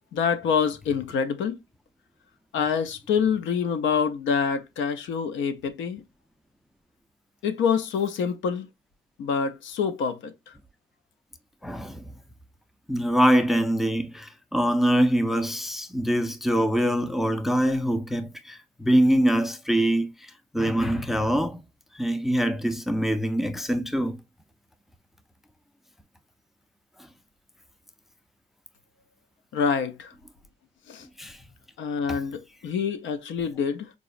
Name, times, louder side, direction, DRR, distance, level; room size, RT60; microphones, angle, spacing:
voice 1, 0.1-1.6 2.5-6.0 7.4-8.7 9.2-10.5 29.5-30.1 30.9-31.1 31.8-33.9, left 6 dB, 75° left, 0.5 m, -26 dB
voice 2, 11.6-12.0 12.9-20.1 20.5-21.6 22.0-24.2 31.2-31.4, equal, ahead, 0.4 m, -24 dB
4.7 x 2.0 x 2.4 m
cardioid pair, 90°, 20 cm